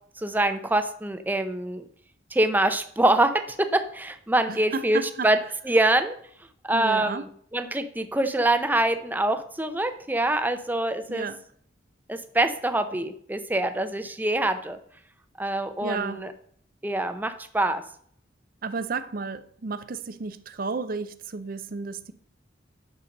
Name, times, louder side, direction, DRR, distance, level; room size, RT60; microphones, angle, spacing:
voice 1, 0.2-1.8 2.3-5.4 5.7-6.2 6.6-11.3 12.1-14.8 15.4-16.3 16.8-17.8, right 1 dB, 10° right, 0.7 m, -25 dB
voice 2, 4.5-5.5 6.7-7.3 11.1-11.5 15.8-16.3 18.6-22.1, right 4 dB, 50° right, 0.5 m, -33 dB
8.5 x 6.9 x 5.3 m
head